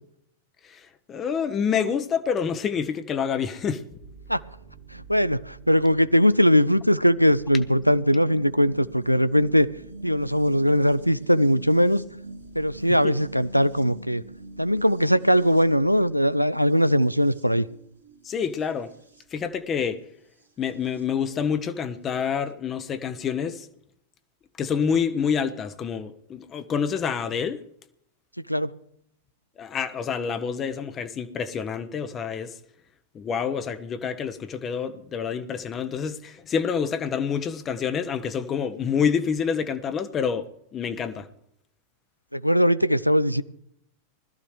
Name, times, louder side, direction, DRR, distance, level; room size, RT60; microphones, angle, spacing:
voice 1, 0.6-3.8 13.0-13.1 18.2-18.9 19.3-20.0 20.6-23.7 24.6-27.6 29.6-32.5 33.1-41.3, left 7 dB, 25° left, 10 dB, 0.9 m, -27 dB
sound 1, 4.0-21.0 22.2-22.3, right 2 dB, 85° right, 2.3 m, -45 dB
voice 2, 4.9-9.7 10.0-12.0 12.6-14.2 14.6-17.6 28.5-28.7 42.3-43.4, equal, 90° left, 16 dB, 0.5 m, -20 dB
20.5 x 13.5 x 3.2 m, 0.73 s
figure-of-eight pair, 90°, 0 cm